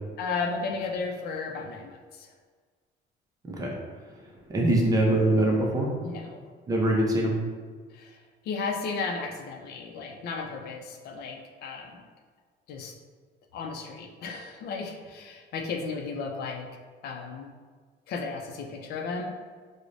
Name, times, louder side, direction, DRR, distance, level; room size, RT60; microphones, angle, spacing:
voice 1, 0.2-2.3 6.0-6.4 7.9-8.2 8.5-12.0 12.7-12.9 13.5-16.7 17.0-17.5 18.1-19.3, left 4 dB, 60° left, 2 dB, 0.4 m, -34 dB
voice 2, 4.5-5.9 6.7-7.3, right 1 dB, 20° right, -2 dB, 0.4 m, -23 dB
4.7 x 2.0 x 2.6 m, 1.6 s
cardioid pair, 175°, 18 cm